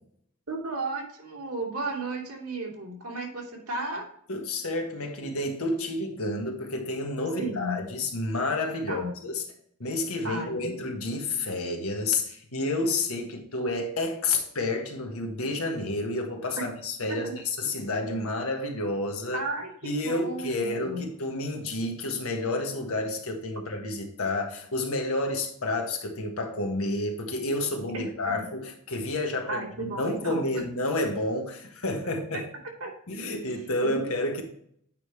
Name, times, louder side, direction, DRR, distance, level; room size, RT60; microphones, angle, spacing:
voice 1, 0.5-4.1 7.4-7.8 8.9-9.1 10.2-10.7 17.1-17.3 19.3-21.1 27.9-28.5 29.5-30.4 32.8-32.9 33.8-34.0, right 2 dB, 80° right, -1 dB, 2.5 m, -34 dB
voice 2, 4.3-9.4 9.8-19.4 19.8-32.5 33.1-34.4, left 2 dB, 65° left, 2 dB, 1.5 m, -30 dB
8.9 x 5.2 x 3.3 m, 0.66 s
head